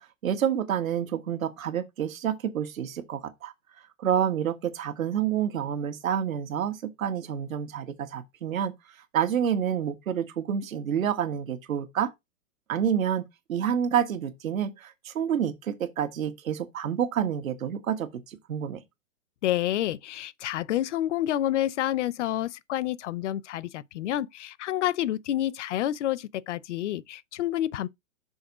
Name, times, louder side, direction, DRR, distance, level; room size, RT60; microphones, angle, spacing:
voice 1, 0.0-3.5 4.0-8.7 9.1-12.1 12.7-18.8, right 9 dB, 80° right, 1.6 m, -28 dB
voice 2, 19.4-27.9, left 13 dB, 60° left, 0.6 m, -29 dB
6.4 x 4.2 x 6.0 m
hypercardioid pair, 155°, 40 cm